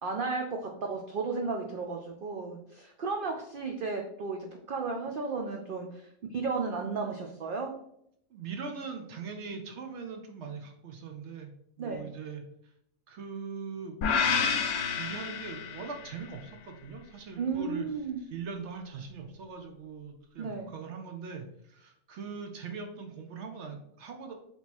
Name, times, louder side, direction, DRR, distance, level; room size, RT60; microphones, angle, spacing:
voice 1, 0.0-7.7 11.8-12.1 17.4-18.2 20.4-20.7, right 4 dB, 85° right, 3 dB, 0.4 m, -34 dB
voice 2, 8.3-11.5 11.8-12.7 13.1-14.6 14.9-17.9 18.2-24.3, right 5 dB, 65° right, 4 dB, 0.8 m, -41 dB
sound 1, 14.0-16.2, left 6 dB, 85° left, 1.1 m, -29 dB
3.5 x 3.0 x 4.1 m, 0.73 s
omnidirectional pair, 1.5 m